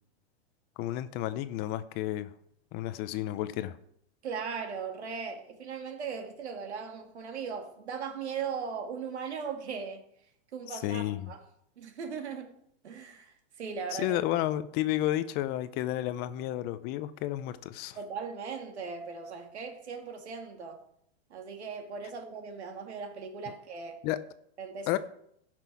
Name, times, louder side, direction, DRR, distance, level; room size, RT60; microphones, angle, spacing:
voice 1, 0.8-2.3 2.7-3.8 10.7-11.3 13.9-18.0 24.0-24.2 24.9-25.0, left 14 dB, 30° left, 0.6 m, -31 dB
voice 2, 4.2-10.0 10.5-11.4 11.8-12.5 12.8-14.2 18.0-20.8 21.3-24.0 24.6-25.0, right 6 dB, 90° right, 2.3 m, -38 dB
16.0 x 6.1 x 4.6 m
hypercardioid pair, 140°, 32 cm